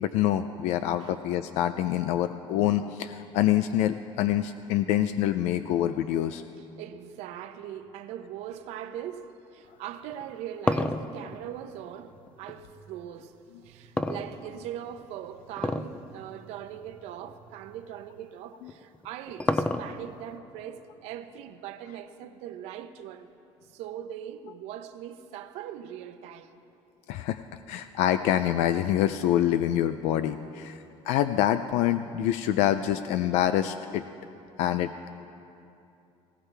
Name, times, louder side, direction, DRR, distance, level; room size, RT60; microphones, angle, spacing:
voice 1, 0.0-6.4 27.1-27.4 27.7-30.8 31.1-34.0 34.6-35.1, left 11 dB, 75° left, 0.4 m, -26 dB
voice 2, 6.8-23.3 23.7-26.6, right 10 dB, 75° right, 0.7 m, -41 dB
sound 1, 10.1-12.6 14.0-14.8 15.6-16.0 16.3-16.4 17.2-17.3 18.7-20.2, left 2 dB, 10° left, 0.4 m, -29 dB
19.0 x 16.5 x 3.4 m
cardioid pair, 160°, 11 cm